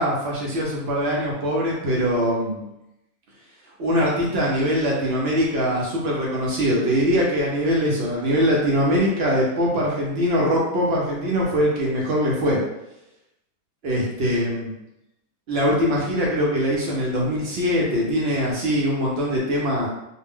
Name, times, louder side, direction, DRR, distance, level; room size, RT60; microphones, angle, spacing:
voice 1, 0.0-2.6 3.8-12.6 13.8-14.7 15.5-19.9, equal, 55° right, -4 dB, 0.8 m, -22 dB
2.5 x 2.1 x 3.4 m, 0.87 s
omnidirectional pair, 1.5 m